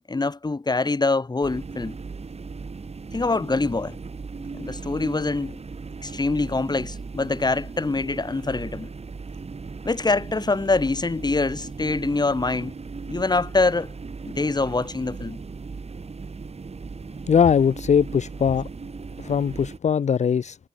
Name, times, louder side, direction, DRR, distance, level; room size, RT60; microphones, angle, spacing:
voice 1, 0.1-2.0 3.1-4.0 4.5-5.6 6.0-8.9 9.8-12.7 13.1-13.9 14.3-15.4, left 3 dB, 30° left, 1.2 m, -24 dB
sound 1, 1.4-19.8, right 4 dB, 50° right, 1.6 m, -37 dB
voice 2, 17.3-18.7 19.2-20.6, left 7 dB, 55° left, 0.4 m, -20 dB
wide cardioid pair, 115°, 14 cm